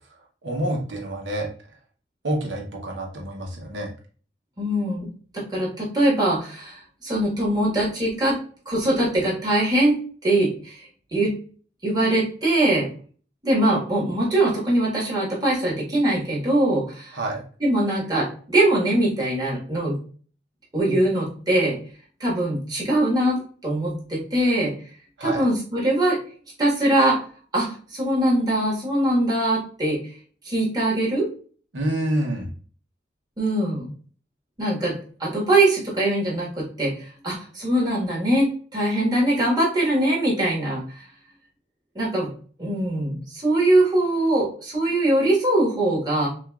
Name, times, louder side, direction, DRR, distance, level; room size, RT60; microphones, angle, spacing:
voice 1, 0.4-1.5 2.2-3.9 17.1-17.4 25.2-25.5 31.7-32.5, right 1 dB, 85° right, 0 dB, 1.0 m, -27 dB
voice 2, 4.6-5.1 5.3-8.4 8.6-11.3 11.8-12.9 13.4-17.2 17.6-20.0 20.7-21.8 22.2-24.7 25.2-26.2 26.6-27.2 27.5-30.0 30.4-31.3 33.4-33.9 34.6-41.0 41.9-42.3 42.6-46.3, right 1 dB, 20° right, -6 dB, 1.6 m, -22 dB
6.1 x 2.5 x 2.4 m, 0.42 s
head